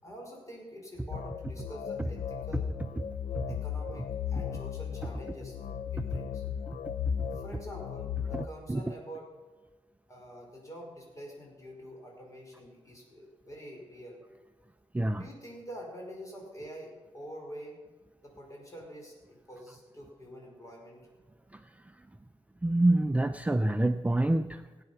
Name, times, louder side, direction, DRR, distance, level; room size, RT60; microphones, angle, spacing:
voice 1, 0.0-2.7 3.5-6.4 7.3-9.3 10.1-14.2 15.1-17.8 18.2-21.0, equal, 30° left, 0 dB, 5.0 m, -46 dB
sound 1, 1.1-8.5, left 8 dB, 75° left, 0.6 m, -36 dB
voice 2, 8.3-8.8 14.9-15.3 21.5-21.7 22.6-24.8, right 1 dB, 10° right, 8 dB, 0.5 m, -27 dB
18.0 x 9.1 x 5.8 m, 1.3 s
cardioid pair, 100°, 12 cm